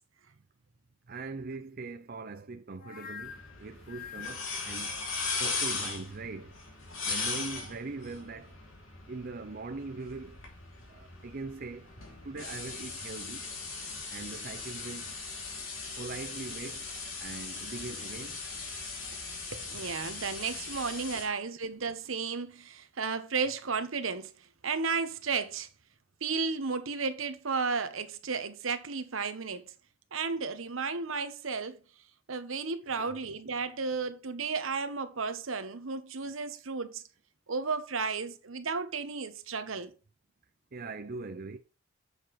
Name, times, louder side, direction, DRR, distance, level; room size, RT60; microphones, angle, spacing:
voice 1, 1.1-5.1 5.4-6.6 7.0-8.6 9.1-10.4 10.9-11.9 12.2-13.4 14.1-15.1 16.0-16.9 17.2-18.4 25.4-25.5 32.8-33.1 40.7-41.6, right 3 dB, 50° right, 0.6 m, -41 dB
sound 1, 2.8-5.9, left 7 dB, 45° left, 1.1 m, -46 dB
sound 2, 3.2-21.2, left 4 dB, 85° left, 2.9 m, -39 dB
voice 2, 19.5-25.7 26.2-29.7 30.1-31.8 32.3-37.0 37.5-39.9, right 4 dB, 80° right, 1.0 m, -33 dB
8.2 x 6.8 x 3.2 m
head